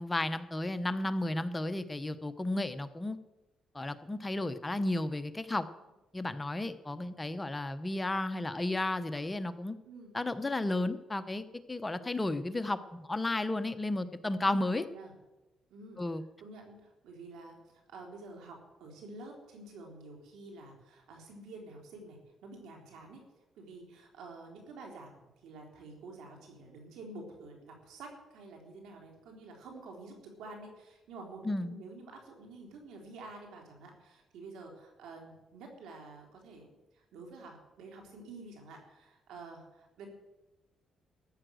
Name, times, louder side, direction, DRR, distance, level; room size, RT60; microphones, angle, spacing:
voice 1, 0.0-3.2 3.7-5.7 6.1-9.8 10.1-14.8 16.0-16.2 31.4-31.7, left 2 dB, 15° left, 10 dB, 0.9 m, -33 dB
voice 2, 14.4-15.1 15.7-16.0 16.4-23.2 23.6-40.1, right 3 dB, 85° right, 2 dB, 3.5 m, -49 dB
14.0 x 8.9 x 6.3 m, 1.0 s
cardioid pair, 90°, 0 cm